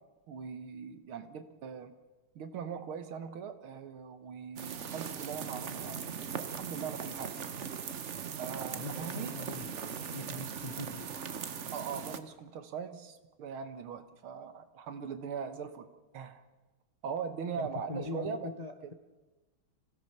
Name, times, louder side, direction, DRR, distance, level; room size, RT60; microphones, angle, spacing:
voice 1, 0.3-1.9 2.4-6.0 6.4-7.3 8.4-9.4 11.7-16.4 17.0-18.5 18.8-18.9, right 6 dB, 90° right, 9 dB, 2.2 m, -40 dB
sound 1, 4.6-12.2, right 7 dB, 50° right, 1.0 m, -39 dB
voice 2, 8.8-11.1 11.7-11.8 17.6-18.9, left 2 dB, 30° left, 6 dB, 0.7 m, -42 dB
26.0 x 16.0 x 6.8 m, 1.2 s
omnidirectional pair, 2.2 m